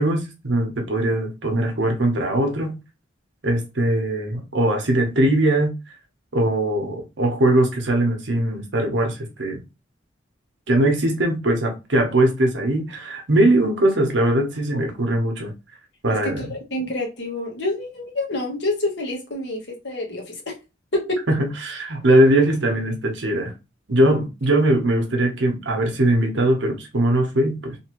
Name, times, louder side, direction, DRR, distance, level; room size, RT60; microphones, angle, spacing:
voice 1, 0.0-2.8 3.4-5.7 6.3-9.6 10.7-15.5 16.0-16.5 21.3-23.5 23.9-27.8, right 1 dB, 70° right, 0.9 m, -20 dB
voice 2, 16.1-20.5 20.9-21.2, left 2 dB, 65° left, 1.2 m, -27 dB
2.8 x 2.6 x 3.0 m
head